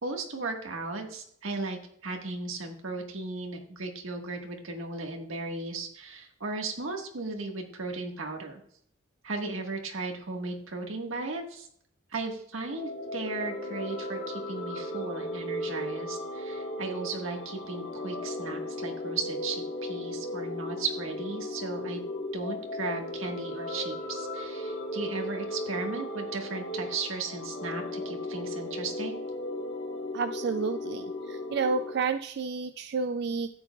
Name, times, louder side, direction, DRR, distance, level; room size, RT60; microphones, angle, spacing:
voice 1, 0.0-8.6 9.2-11.7 12.1-22.0 22.3-29.2, right 3 dB, 85° right, 2 dB, 1.6 m, -36 dB
sound 1, 12.6-31.9, left 1 dB, 65° left, 1.3 m, -36 dB
voice 2, 30.1-33.5, right 4 dB, 55° right, 9 dB, 0.3 m, -30 dB
13.0 x 9.0 x 2.3 m, 0.66 s
head